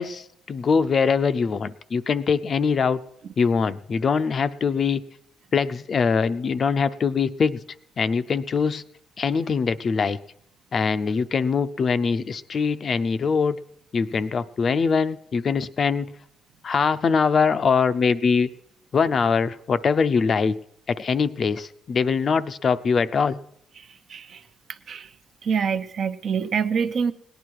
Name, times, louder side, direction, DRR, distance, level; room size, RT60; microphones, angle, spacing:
voice 1, 0.0-3.0 3.4-5.0 5.5-7.6 8.0-8.8 9.2-10.2 10.7-13.6 13.9-16.1 16.6-18.5 18.9-20.5 21.0-23.4, left 5 dB, 40° left, 12 dB, 0.6 m, -22 dB
voice 2, 24.1-24.4 24.9-25.1 25.4-27.1, right 6 dB, 50° right, 9 dB, 0.8 m, -25 dB
18.0 x 10.0 x 4.7 m, 0.70 s
cardioid pair, 115°, 0 cm